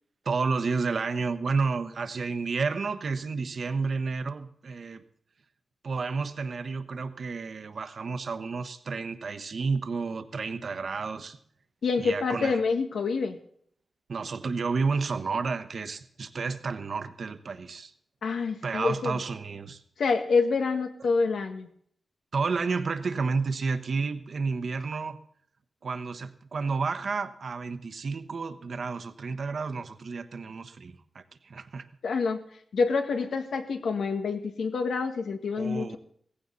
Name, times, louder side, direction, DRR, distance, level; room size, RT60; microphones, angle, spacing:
voice 1, 0.2-5.0 5.8-11.4 12.0-12.6 14.1-17.9 18.6-19.8 22.3-25.2 25.8-31.9 35.6-36.0, right 4 dB, 55° right, 9 dB, 1.1 m, -31 dB
voice 2, 11.8-13.4 18.2-19.2 20.0-21.7 32.0-32.4 32.7-36.0, left 4 dB, 85° left, 5 dB, 1.8 m, -27 dB
17.0 x 15.5 x 4.0 m, 0.64 s
wide cardioid pair, 155°, 0 cm